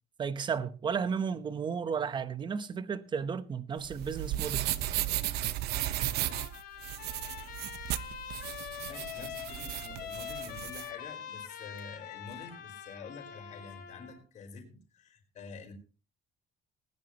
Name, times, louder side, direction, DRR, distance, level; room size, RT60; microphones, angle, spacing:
voice 1, 0.2-4.7, right 6 dB, 25° right, 0.9 m, -33 dB
sound 1, 3.8-10.9, right 14 dB, 70° right, 0.9 m, -35 dB
Trumpet, 6.0-14.2, left 9 dB, 65° left, 3.3 m, -44 dB
voice 2, 8.9-15.7, left 4 dB, 45° left, 4.9 m, -48 dB
20.0 x 11.0 x 3.0 m
cardioid pair, 160°, 17 cm